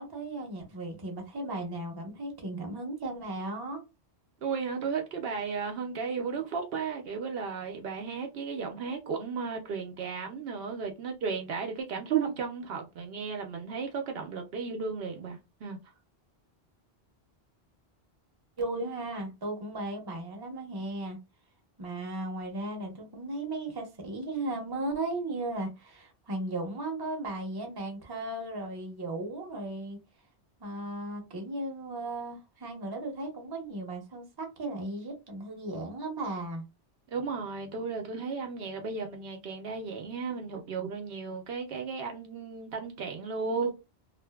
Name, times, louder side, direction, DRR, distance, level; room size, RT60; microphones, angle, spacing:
voice 1, 0.0-3.8 18.6-21.2 21.8-30.0 30.6-36.6, right 2 dB, 25° right, 0.7 m, -36 dB
voice 2, 4.4-15.8 37.1-43.7, right 5 dB, 70° right, 0.8 m, -34 dB
2.5 x 2.4 x 2.2 m
omnidirectional pair, 1.1 m